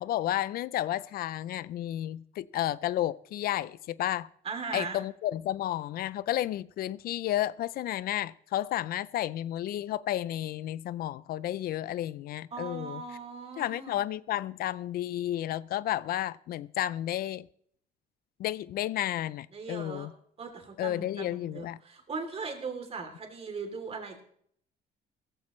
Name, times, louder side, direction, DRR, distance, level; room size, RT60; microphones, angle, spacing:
voice 1, 0.0-4.3 4.7-13.0 13.6-17.5 18.4-20.1 20.8-21.8, left 13 dB, 65° left, 0.5 m, -32 dB
voice 2, 4.4-5.0 12.5-14.0 19.5-20.1 20.4-24.2, right 4 dB, 35° right, 3.0 m, -39 dB
16.0 x 15.0 x 3.1 m
cardioid pair, 110°, 17 cm